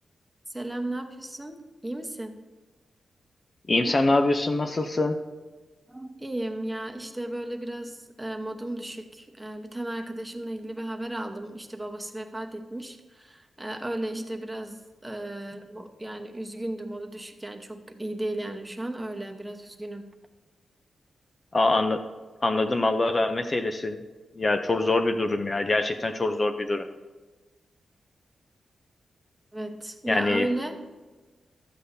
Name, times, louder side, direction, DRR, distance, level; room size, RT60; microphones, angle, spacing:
voice 1, 0.5-2.4 5.9-20.0 29.5-30.9, right 1 dB, 10° right, 4 dB, 1.0 m, -35 dB
voice 2, 3.7-5.2 21.5-22.0 22.4-24.0 24.4-26.8 30.1-30.5, left 2 dB, 35° left, 7 dB, 0.5 m, -24 dB
13.0 x 8.4 x 2.7 m, 1.3 s
cardioid pair, 90°, 0 cm